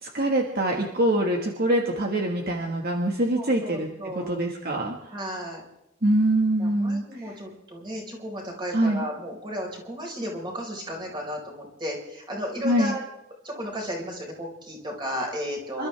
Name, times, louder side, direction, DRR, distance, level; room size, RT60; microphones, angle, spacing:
voice 1, 0.0-3.9 4.2-5.1 6.0-7.4 8.7-9.0 12.6-12.9 15.8-15.9, right 1 dB, 50° right, 1 dB, 1.8 m, -24 dB
voice 2, 3.3-4.4 5.1-5.6 6.6-13.0 13.4-15.9, equal, 25° right, -1 dB, 5.0 m, -34 dB
28.0 x 13.5 x 3.5 m, 0.88 s
head